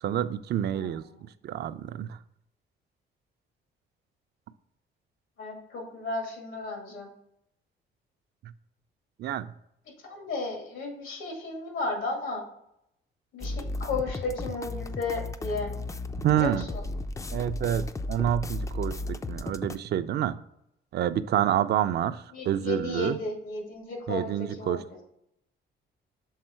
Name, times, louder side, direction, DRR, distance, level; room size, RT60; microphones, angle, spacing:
voice 1, 0.0-1.0 1.4-2.2 8.4-8.5 9.2-9.5 16.2-16.7 17.3-20.4 20.9-23.2 24.1-24.8, right 11 dB, 55° right, 12 dB, 0.4 m, -28 dB
voice 2, 0.7-1.3 5.4-7.1 10.1-12.4 13.3-15.7 16.3-16.7 22.3-25.0, left 3 dB, 85° left, 1 dB, 2.0 m, -34 dB
sound 1, 13.4-19.8, left 2 dB, 15° left, 0.3 m, -34 dB
6.5 x 3.6 x 4.4 m, 0.77 s
cardioid pair, 90°, 20 cm